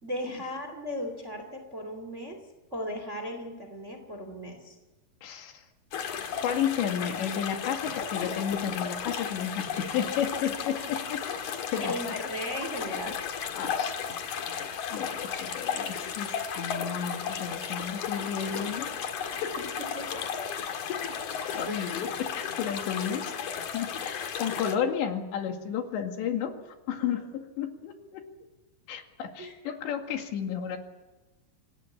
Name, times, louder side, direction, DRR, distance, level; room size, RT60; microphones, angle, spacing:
voice 1, 0.0-2.4 2.7-4.8 11.8-13.2 19.6-19.7 19.9-20.3 21.7-22.0 27.0-27.2 29.4-29.5, equal, 20° right, 5 dB, 2.5 m, -37 dB
voice 2, 5.2-5.6 6.4-11.2 11.7-12.2 13.6-14.0 14.9-18.9 19.3-19.5 21.6-26.5 26.9-28.2 28.9-30.8, left 8 dB, 85° left, 4 dB, 4.5 m, -32 dB
sound 1, 5.9-24.8, left 7 dB, 55° left, 2.7 m, -34 dB
26.0 x 19.5 x 7.5 m, 1.2 s
omnidirectional pair, 5.0 m